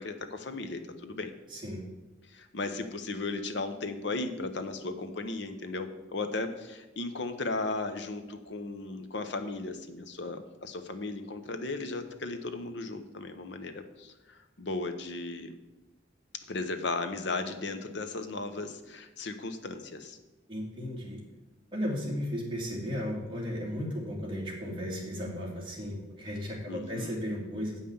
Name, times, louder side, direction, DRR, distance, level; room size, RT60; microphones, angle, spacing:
voice 1, 0.0-1.3 2.3-15.6 16.5-20.2 26.7-27.2, left 3 dB, 60° left, 8 dB, 0.9 m, -36 dB
voice 2, 1.5-1.8 20.5-21.2 21.7-27.8, equal, 25° right, -3 dB, 2.4 m, -35 dB
8.3 x 5.6 x 6.9 m, 1.0 s
head